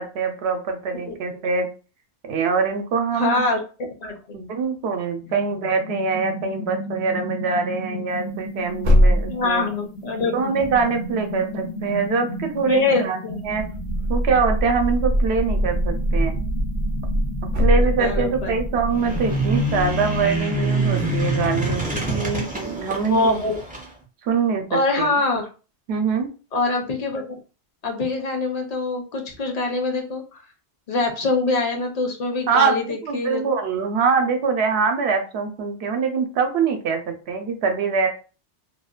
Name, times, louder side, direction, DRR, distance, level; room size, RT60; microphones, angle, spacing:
voice 1, 0.0-1.7 2.2-3.4 4.3-9.7 10.3-13.2 13.4-13.6 14.1-16.4 17.6-23.3 24.2-25.1 25.9-26.3 32.5-38.1, right 5 dB, 85° right, 5 dB, 0.8 m, -23 dB
voice 2, 3.2-3.6 4.0-4.4 9.3-10.5 12.7-13.4 17.7-18.6 23.1-23.6 24.7-25.5 26.5-27.2 27.8-30.2 30.9-33.4, left 3 dB, 45° left, 3 dB, 0.6 m, -24 dB
sound 1, 5.2-21.8, right 1 dB, 85° left, 0.9 m, -29 dB
sound 2, 8.3-9.6 10.6-11.1 12.3-12.4 12.6-12.7 13.7-14.1 14.4-14.5 16.5-16.6 16.9-17.2 17.5-18.3, equal, 55° right, 0.6 m, -19 dB
sound 3, 18.9-23.9, right 1 dB, 15° right, 0.3 m, -25 dB
2.6 x 2.1 x 2.3 m, 0.35 s
omnidirectional pair, 1.1 m